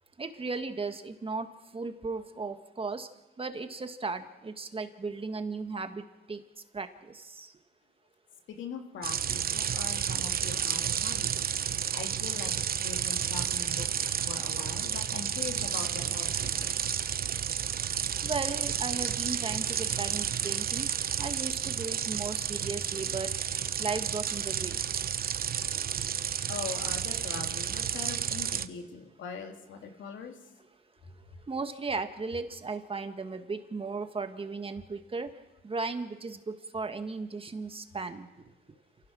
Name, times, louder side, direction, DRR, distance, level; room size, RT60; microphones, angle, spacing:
voice 1, 0.2-1.5 1.7-3.1 3.4-6.4 6.7-7.5 18.2-20.9 21.2-23.3 23.8-24.8 26.0-26.2 31.5-35.3 35.6-38.3, right 4 dB, 25° right, 7 dB, 1.7 m, -36 dB
voice 2, 8.5-11.4 11.8-16.8 25.6-26.0 26.5-30.4, left 5 dB, 75° left, 3 dB, 3.0 m, -42 dB
sound 1, 9.0-28.7, right 8 dB, 50° right, 0.9 m, -31 dB
28.5 x 15.5 x 6.3 m, 1.1 s
cardioid pair, 90°, 20 cm